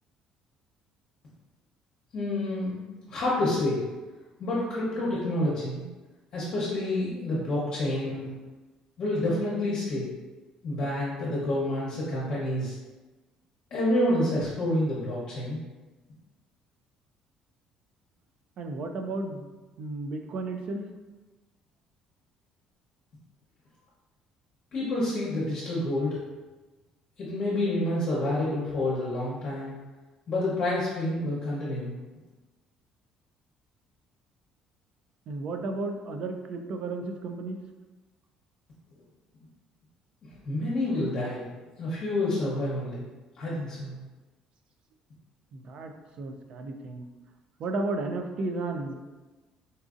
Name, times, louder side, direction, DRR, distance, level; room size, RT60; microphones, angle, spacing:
voice 1, 2.1-3.8 4.4-5.8 6.3-8.3 9.0-10.1 10.6-12.7 13.7-15.6 24.7-26.2 27.2-29.7 30.3-31.9 40.4-41.5 41.8-43.0 43.4-43.9, left 1 dB, 45° left, -8 dB, 0.8 m, -28 dB
voice 2, 18.6-19.5 19.8-20.9 35.3-37.6 45.5-47.0 47.6-48.9, right 2 dB, 50° right, 5 dB, 0.4 m, -33 dB
3.9 x 2.5 x 2.4 m, 1.2 s
cardioid pair, 150°, 2 cm